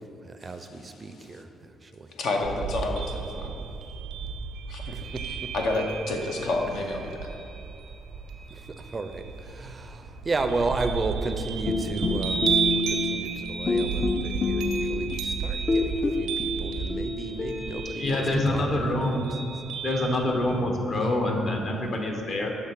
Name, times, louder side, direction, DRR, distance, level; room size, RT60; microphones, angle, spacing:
voice 1, 0.2-1.5 1.8-2.1 5.3-5.4 8.5-12.6 12.9-18.2 18.5-19.0, right 3 dB, 30° right, 8 dB, 0.4 m, -33 dB
voice 2, 1.0-1.4 2.1-3.5 4.7-5.0 5.5-7.3, left 2 dB, 75° left, 1 dB, 0.7 m, -30 dB
sound 1, 2.4-20.6, right 6 dB, 85° right, 0.5 m, -33 dB
sound 2, 11.7-13.4 13.7-15.3 15.7-18.3, left 3 dB, 35° left, 0.4 m, -28 dB
voice 3, 18.0-19.2 19.8-22.5, left 1 dB, 55° left, 1 dB, 1.1 m, -26 dB
6.5 x 3.3 x 5.9 m, 2.7 s
cardioid pair, 90°, 0 cm